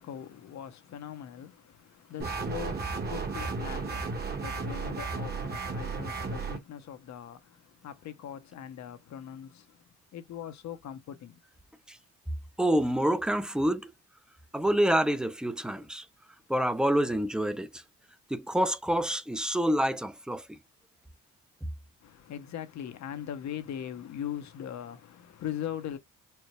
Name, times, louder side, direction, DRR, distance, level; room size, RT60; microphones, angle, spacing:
voice 1, 0.0-9.8 10.1-11.4 22.0-26.0, left 10 dB, 65° left, 0.9 m, -41 dB
sound 1, 2.2-6.6, right 4 dB, 30° right, 1.2 m, -34 dB
voice 2, 12.6-13.9 14.5-16.1 16.5-17.8 18.3-20.4, equal, 5° right, 0.6 m, -27 dB
4.5 x 2.1 x 3.1 m
cardioid pair, 90°, 30 cm